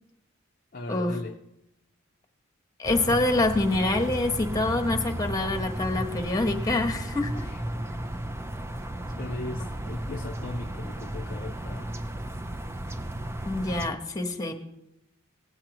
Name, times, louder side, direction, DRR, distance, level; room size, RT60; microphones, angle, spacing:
voice 1, 0.7-1.4 7.4-7.6 9.2-11.9, left 2 dB, 45° left, 0.6 m, -37 dB
voice 2, 2.8-7.5 13.4-14.5, left 2 dB, 15° left, 1.1 m, -26 dB
sound 1, 2.8-13.9, right 1 dB, 10° right, 0.4 m, -34 dB
17.0 x 8.9 x 3.0 m
head